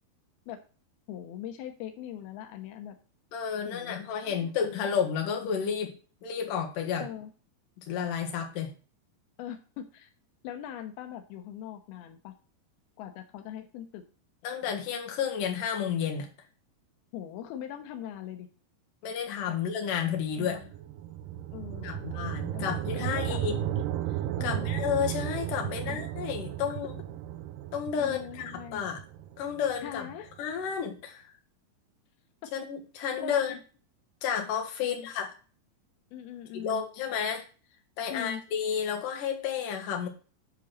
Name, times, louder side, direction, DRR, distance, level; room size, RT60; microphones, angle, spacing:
voice 1, 1.1-3.0 3.7-4.9 7.0-7.3 9.4-10.1 10.4-12.3 13.0-14.0 17.1-18.5 19.5-19.6 20.4-20.7 21.5-22.0 22.5-23.4 24.4-24.6 25.7-26.0 28.0-28.9 29.8-30.3 32.4-32.5 33.1-33.6 34.8-35.1 36.1-36.8 38.1-38.4, left 10 dB, 85° left, 6 dB, 2.8 m, -41 dB
voice 2, 3.3-7.1 7.8-8.7 14.4-16.3 19.0-20.6 21.8-23.6 24.4-27.0 27.7-29.0 29.4-30.1 30.4-31.3 32.5-33.5 34.2-35.3 36.5-37.4 38.0-40.1, left 7 dB, 65° left, 4 dB, 3.0 m, -31 dB
sound 1, 20.1-30.4, right 11 dB, 75° right, 2.1 m, -35 dB
10.5 x 4.1 x 6.3 m, 0.37 s
omnidirectional pair, 4.5 m